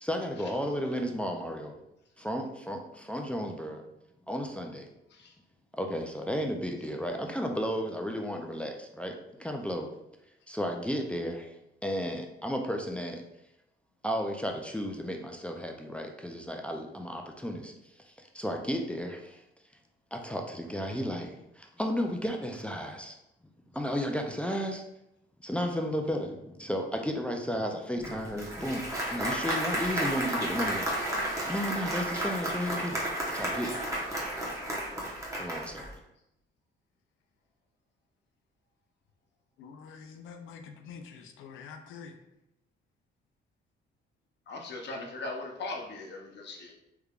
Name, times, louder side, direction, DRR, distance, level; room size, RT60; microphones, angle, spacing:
voice 1, 0.0-1.7 2.2-3.8 4.3-4.9 5.7-9.9 10.5-11.6 11.8-13.2 14.0-17.7 18.1-19.4 20.1-23.1 23.7-24.8 25.4-31.1 31.5-33.0 33.3-33.8 34.9-35.1 35.4-35.9, equal, 5° left, 2 dB, 0.4 m, -33 dB
Applause, 28.0-35.9, right 1 dB, 15° right, 1.0 m, -32 dB
voice 2, 39.6-42.1, left 6 dB, 85° left, 6 dB, 0.5 m, -46 dB
voice 3, 44.5-46.7, left 2 dB, 60° left, 1 dB, 0.8 m, -39 dB
3.3 x 3.3 x 2.4 m, 0.85 s
cardioid pair, 90°, 20 cm